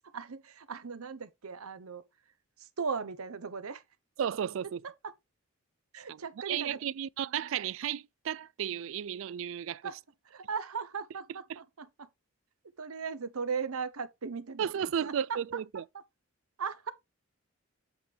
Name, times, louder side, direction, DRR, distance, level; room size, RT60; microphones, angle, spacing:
voice 1, 0.1-2.0 2.6-3.8 5.0-5.1 5.9-6.8 9.8-10.0 10.2-12.1 12.8-15.6 16.6-16.9, right 5 dB, 85° right, 0.9 m, -38 dB
voice 2, 4.2-4.8 6.1-6.2 6.5-9.9 14.6-15.8, right 9 dB, 65° right, 0.3 m, -33 dB
8.0 x 3.4 x 4.5 m
head